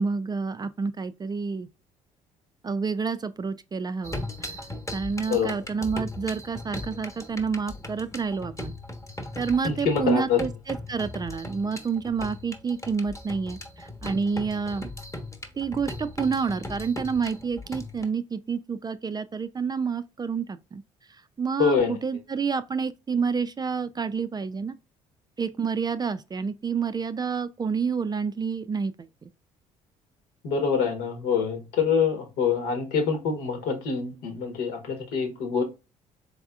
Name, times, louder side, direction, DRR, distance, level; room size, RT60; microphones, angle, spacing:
voice 1, 0.0-1.7 2.6-4.5 4.9-8.7 9.4-14.9 15.5-20.8 21.1-24.8 25.4-29.1, right 5 dB, 25° right, 0.4 m, -29 dB
sound 1, 4.0-18.0, left 1 dB, 15° left, 1.1 m, -38 dB
voice 2, 9.6-10.4 21.6-22.0 30.4-35.6, left 6 dB, 75° left, 1.2 m, -25 dB
4.1 x 3.5 x 2.3 m
hypercardioid pair, 50°, 17 cm